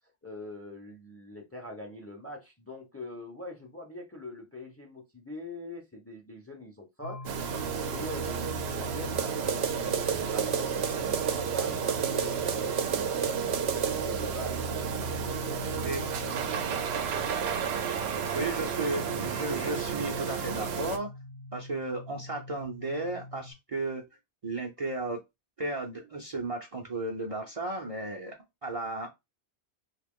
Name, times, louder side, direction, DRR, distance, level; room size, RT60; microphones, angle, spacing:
voice 1, 0.2-14.7 15.3-17.1, left 1 dB, 15° left, 0.7 m, -44 dB
sound 1, 7.0-23.5, left 2 dB, 75° left, 1.0 m, -43 dB
sound 2, 7.2-21.0, right 7 dB, 75° right, 0.8 m, -31 dB
voice 2, 18.3-21.1 21.5-24.0 24.4-25.2 25.6-28.4 28.6-29.1, right 2 dB, 40° right, 0.6 m, -34 dB
2.8 x 2.4 x 3.6 m
omnidirectional pair, 1.1 m